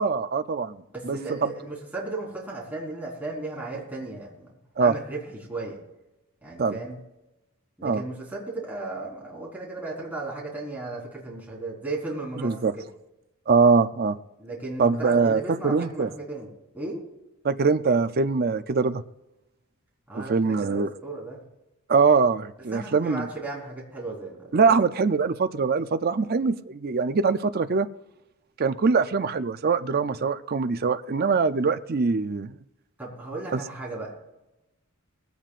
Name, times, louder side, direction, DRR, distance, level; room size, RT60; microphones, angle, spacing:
voice 1, 0.0-1.5 4.8-4.9 6.6-6.8 7.8-8.0 12.4-12.7 13.5-14.2 14.8-16.1 17.4-19.0 20.1-20.9 21.9-23.3 24.5-27.9 28.6-32.5 33.5-33.6, right 4 dB, 45° right, 10 dB, 0.5 m, -23 dB
voice 2, 0.9-4.5 4.8-5.8 6.4-7.0 7.8-12.9 14.4-16.5 16.7-17.0 20.1-21.4 22.7-24.8 33.0-34.1, right 2 dB, 10° right, -5 dB, 4.2 m, -35 dB
20.5 x 16.5 x 2.5 m, 0.94 s
head